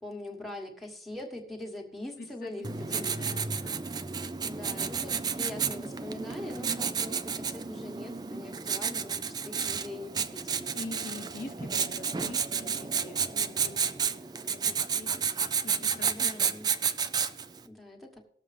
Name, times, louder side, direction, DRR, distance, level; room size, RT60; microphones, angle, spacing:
voice 1, 0.0-3.1 4.4-10.8 16.0-16.7 17.6-18.2, left 1 dB, ahead, 0 dB, 1.3 m, -42 dB
voice 2, 2.2-3.8 10.7-15.1 15.6-16.5, left 2 dB, 50° left, 4 dB, 0.8 m, -45 dB
Writing, 2.6-17.6, right 6 dB, 20° right, 0.4 m, -31 dB
18.5 x 7.1 x 3.3 m, 0.67 s
head